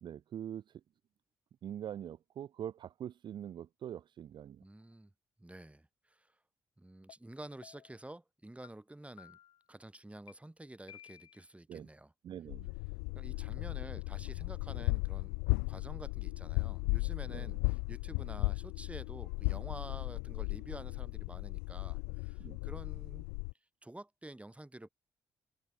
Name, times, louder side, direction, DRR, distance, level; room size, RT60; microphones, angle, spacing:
voice 1, 0.0-0.8 1.6-4.6 11.7-11.9 12.2-12.7 17.3-17.6 22.4-22.6, right 10 dB, 55° right, 0.4 m, -44 dB
voice 2, 4.6-5.1 5.4-6.3 6.8-9.4 9.7-12.1 13.1-15.4 15.7-23.3 23.8-24.9, right 1 dB, 15° right, 5.1 m, -50 dB
sound 1, 7.1-7.2 7.6-8.0 8.6-8.7 9.2-9.6 10.3-10.4 10.9-11.5, left 11 dB, 70° left, 1.7 m, -55 dB
sound 2, 12.5-23.5, left 40 dB or more, 85° left, 0.4 m, -36 dB
hypercardioid pair, 45°, 9 cm